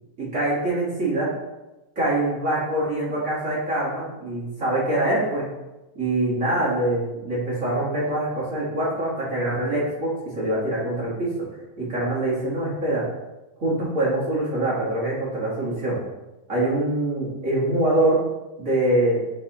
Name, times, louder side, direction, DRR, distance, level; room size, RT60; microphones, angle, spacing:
voice 1, 0.2-1.3 1.9-5.5 5.9-11.3 11.8-13.1 13.6-16.0 16.5-18.2 18.6-19.2, right 1 dB, 35° right, -8 dB, 1.3 m, -24 dB
9.9 x 3.3 x 2.9 m, 1.0 s
omnidirectional pair, 3.9 m